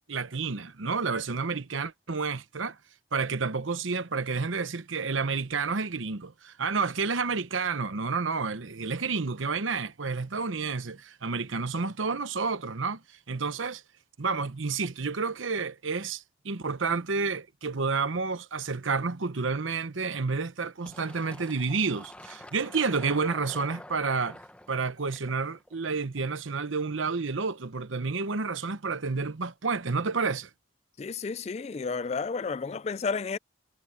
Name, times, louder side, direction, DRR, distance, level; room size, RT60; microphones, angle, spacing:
voice 1, 0.1-2.8 3.1-13.0 13.3-13.8 14.2-24.4 24.7-30.5, right 4 dB, 85° right, 1.0 m, -30 dB
Fill (with liquid), 20.9-26.3, left 1 dB, 5° left, 1.1 m, -47 dB
voice 2, 31.0-33.4, left 4 dB, 35° left, 0.3 m, -32 dB
head